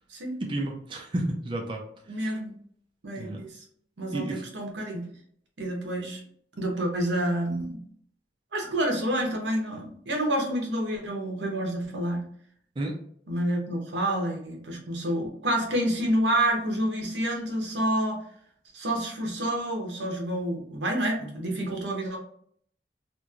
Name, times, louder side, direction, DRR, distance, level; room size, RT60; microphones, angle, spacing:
voice 1, 0.4-1.8 2.1-2.3 3.2-3.4 4.1-4.4 12.8-13.0, right 1 dB, 30° right, 0 dB, 0.4 m, -31 dB
voice 2, 2.1-2.5 3.0-3.6 4.0-5.1 5.6-6.2 6.6-7.8 8.5-12.2 13.3-18.2 18.7-22.2, right 1 dB, 90° right, 1 dB, 0.8 m, -28 dB
2.9 x 2.6 x 2.4 m, 0.62 s
head